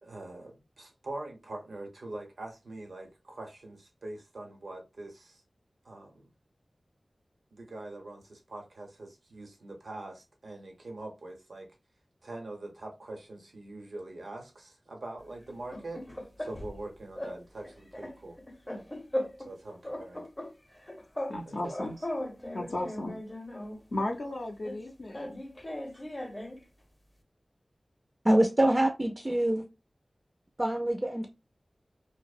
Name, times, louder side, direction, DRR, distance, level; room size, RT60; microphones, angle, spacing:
voice 1, 0.0-5.4 5.8-6.3 7.5-11.7 12.2-16.0 16.4-18.4 19.4-20.3 21.5-21.7, right 2 dB, 85° right, 0.8 m, -43 dB
sound 1, 15.5-16.8 17.2-17.4 17.6-19.5 19.8-21.4 21.6-23.8 24.6-26.6, left 1 dB, 25° left, 0.5 m, -38 dB
voice 2, 21.3-22.0 22.5-23.2 23.9-25.4, left 1 dB, 75° left, 0.5 m, -35 dB
voice 3, 28.2-29.6 30.6-31.3, right 1 dB, 25° right, 0.4 m, -25 dB
2.7 x 2.0 x 2.4 m
wide cardioid pair, 80°, 0 cm